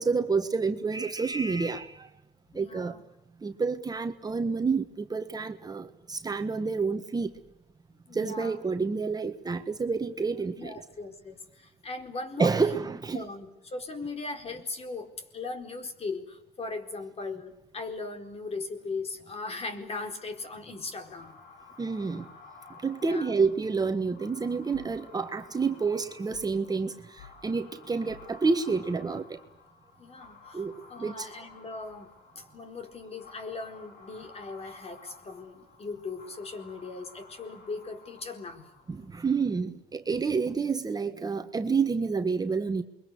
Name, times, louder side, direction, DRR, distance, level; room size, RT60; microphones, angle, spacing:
voice 1, 0.0-2.1 2.5-2.9 3.4-7.3 8.1-10.7 12.4-13.3 21.8-22.3 22.8-29.4 30.5-30.7 31.0-31.3 38.9-42.8, right 4 dB, 25° right, 7 dB, 1.6 m, -29 dB
voice 2, 2.5-3.0 8.1-8.6 10.5-12.9 13.1-21.4 23.0-23.3 30.0-32.1 32.3-38.7, left 3 dB, 35° left, 7 dB, 4.5 m, -39 dB
sound 1, 20.3-39.2, left 4 dB, 65° left, 5.3 m, -53 dB
sound 2, 24.7-25.0 26.3-26.6 27.2-27.4 28.1-28.4, left 7 dB, 85° left, 7.1 m, -52 dB
28.5 x 23.0 x 8.2 m, 0.93 s
cardioid pair, 110°, 17 cm